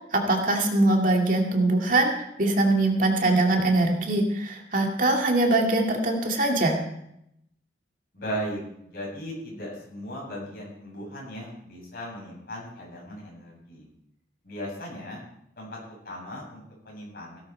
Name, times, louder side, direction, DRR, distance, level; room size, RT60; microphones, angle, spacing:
voice 1, 0.1-2.1 2.4-6.8, right 2 dB, 45° right, 1 dB, 2.3 m, -22 dB
voice 2, 8.1-13.9 14.4-15.2 15.6-17.4, equal, 55° left, -3 dB, 7.9 m, -37 dB
17.0 x 13.0 x 4.5 m, 0.76 s
head